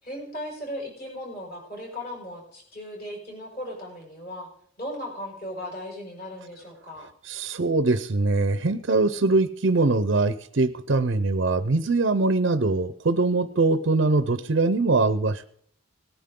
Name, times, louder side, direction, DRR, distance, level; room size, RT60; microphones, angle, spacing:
voice 1, 0.0-4.5 4.8-7.1, equal, 45° left, -1 dB, 5.3 m, -37 dB
voice 2, 7.2-15.5, right 3 dB, 55° right, 11 dB, 0.6 m, -22 dB
18.5 x 10.5 x 3.7 m, 0.63 s
head